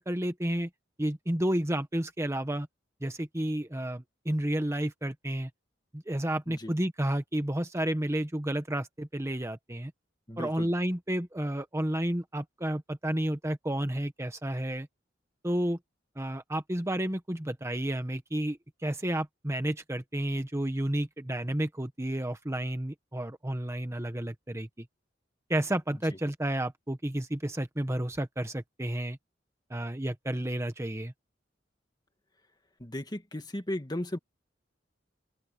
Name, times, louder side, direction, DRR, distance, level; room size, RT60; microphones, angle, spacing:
voice 1, 0.1-0.7 1.0-2.7 3.0-5.5 5.9-9.9 10.4-14.9 15.4-15.8 16.2-24.9 25.5-29.2 29.7-31.1, right 1 dB, 15° right, 1.1 m, -31 dB
voice 2, 10.3-10.7 26.1-26.2 32.8-34.2, left 1 dB, 20° left, 2.1 m, -36 dB
head